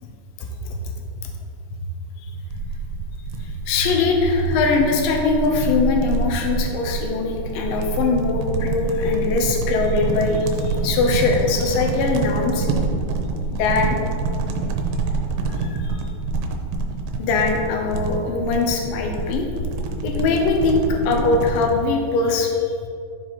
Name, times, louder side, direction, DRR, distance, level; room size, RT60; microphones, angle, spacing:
voice 1, 0.4-0.9 1.2-1.3 2.2-2.3 3.4-12.7 13.5-14.0 15.5-16.0 17.2-19.5 20.0-22.7, left 4 dB, 80° left, 2 dB, 2.0 m, -22 dB
sound 1, 2.5-21.8, right 4 dB, 85° right, 2.9 m, -26 dB
12.5 x 4.8 x 4.1 m, 2.4 s
omnidirectional pair, 5.1 m